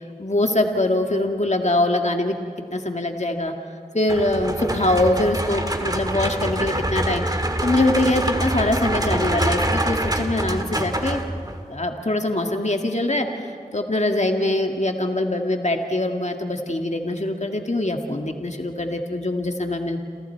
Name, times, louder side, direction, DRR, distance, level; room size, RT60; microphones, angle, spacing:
voice 1, 0.2-3.6 3.9-11.2 11.7-20.0, left 1 dB, 45° left, 4 dB, 1.8 m, -23 dB
sound 1, 4.1-11.7, right 1 dB, 25° right, 1.9 m, -25 dB
29.5 x 27.5 x 4.6 m, 2.3 s
wide cardioid pair, 40°, 16 cm